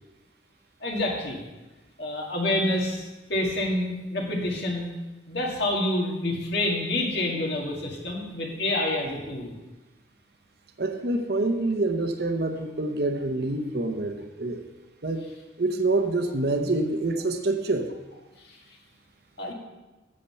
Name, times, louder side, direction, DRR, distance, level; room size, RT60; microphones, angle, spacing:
voice 1, 0.8-1.4 2.0-4.9 5.3-9.5 18.4-18.6 19.4-19.5, left 1 dB, 60° left, 0 dB, 2.0 m, -28 dB
voice 2, 10.8-14.6 15.0-15.3 15.6-17.9, right 2 dB, 55° right, 6 dB, 0.8 m, -26 dB
8.6 x 7.5 x 5.6 m, 1.1 s
head